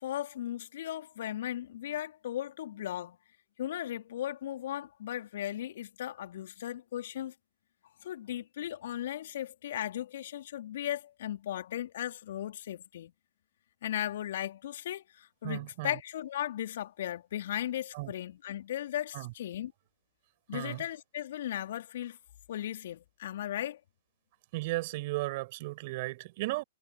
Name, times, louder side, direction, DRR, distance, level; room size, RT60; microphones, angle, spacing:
voice 1, 0.0-3.2 3.6-7.3 8.0-13.1 13.8-19.7 20.5-22.2 22.5-23.8, left 12 dB, 55° left, 4.2 m, -37 dB
voice 2, 15.4-16.0 17.9-18.1 19.1-19.3 20.5-20.8 24.5-26.6, right 21 dB, 45° right, 6.2 m, -35 dB
figure-of-eight pair, 115°, 0 cm